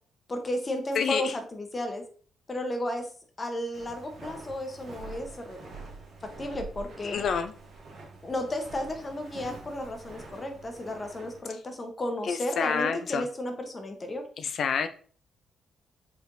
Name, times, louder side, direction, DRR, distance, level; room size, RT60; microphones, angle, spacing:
voice 1, 0.3-2.0 2.5-3.1 3.4-5.7 6.2-7.2 8.2-14.2, left 1 dB, 25° left, 5 dB, 0.8 m, -33 dB
voice 2, 0.9-1.3 7.0-7.5 12.2-13.2 14.4-14.9, left 6 dB, 60° left, 9 dB, 0.4 m, -28 dB
Walk footsteps, 3.7-11.4, right 3 dB, 70° right, 1.8 m, -45 dB
4.5 x 3.3 x 2.6 m, 0.44 s
cardioid pair, 135°, 0 cm